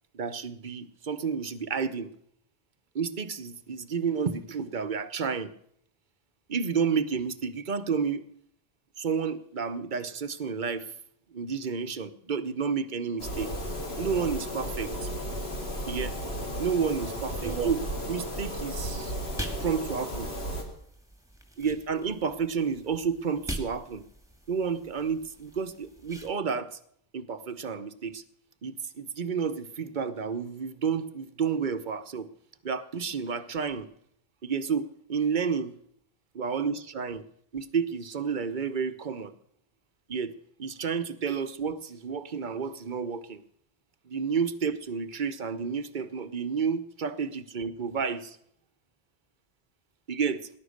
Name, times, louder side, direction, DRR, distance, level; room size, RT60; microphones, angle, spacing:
voice 1, 0.1-2.1 2.9-5.5 6.5-8.2 9.0-10.8 11.3-13.5 14.0-14.9 15.9-16.1 16.6-17.8 18.1-19.1 19.6-20.3 21.6-24.0 24.5-26.8 27.1-28.2 28.6-32.3 32.6-33.9 34.4-35.7 36.3-37.2 37.5-39.3 40.1-40.3 40.6-43.4 44.1-48.4 50.1-50.5, right 6 dB, 50° right, 12 dB, 1.0 m, -30 dB
sound 1, 13.2-20.6, equal, 75° left, 2.9 m, -34 dB
sound 2, 16.3-26.3, right 1 dB, 5° right, 2.1 m, -44 dB
18.5 x 11.0 x 6.5 m, 0.69 s
omnidirectional pair, 1.1 m